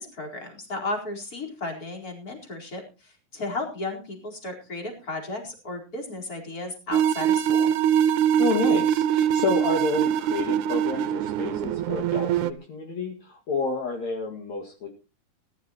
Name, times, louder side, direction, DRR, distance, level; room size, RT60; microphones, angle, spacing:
voice 1, 0.0-7.7, left 2 dB, 25° left, 1 dB, 4.7 m, -34 dB
sound 1, 6.9-12.5, right 9 dB, 75° right, 2.2 m, -23 dB
voice 2, 8.4-14.9, left 4 dB, 60° left, 1 dB, 3.3 m, -29 dB
20.0 x 13.0 x 3.0 m, 0.32 s
omnidirectional pair, 3.8 m